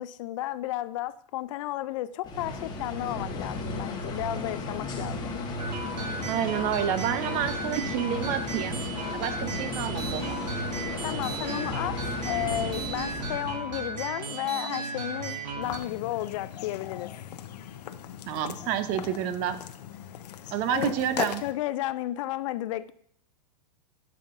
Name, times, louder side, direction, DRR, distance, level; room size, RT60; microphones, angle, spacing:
voice 1, 0.0-5.4 11.0-17.1 20.3-20.9 21.4-22.9, left 15 dB, 50° left, 15 dB, 0.4 m, -33 dB
sound 1, 2.2-13.6, left 2 dB, 20° left, 1.2 m, -34 dB
sound 2, 5.6-15.8, right 4 dB, 85° right, 1.3 m, -35 dB
voice 2, 6.2-8.8 9.1-10.5 18.3-19.6 20.5-21.4, right 10 dB, 40° right, 12 dB, 0.7 m, -29 dB
sound 3, 15.6-21.5, left 10 dB, 75° left, 0.7 m, -38 dB
11.0 x 5.7 x 2.5 m, 0.69 s
hypercardioid pair, 135°, 21 cm